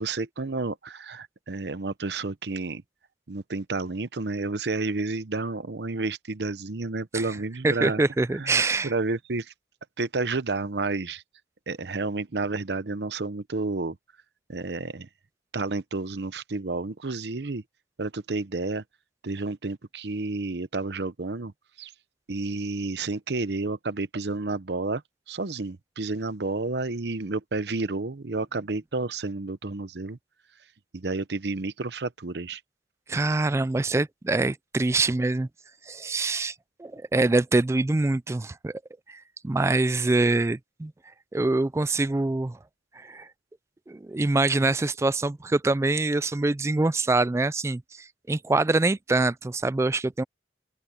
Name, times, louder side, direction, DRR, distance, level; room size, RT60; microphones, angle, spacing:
voice 1, 0.0-2.8 3.3-8.0 8.3-9.5 10.0-11.2 11.7-14.0 14.5-15.1 15.5-17.6 18.0-18.8 19.2-21.5 21.8-21.9 22.3-25.0 25.3-30.2 30.9-32.6, right 3 dB, 75° right, 0.8 m, -30 dB
voice 2, 7.6-8.9 33.1-35.5 35.9-36.5 36.8-38.7 39.1-40.9 41.3-42.6 43.0-43.3 43.9-50.2, right 2 dB, 15° right, 0.3 m, -25 dB
open air
head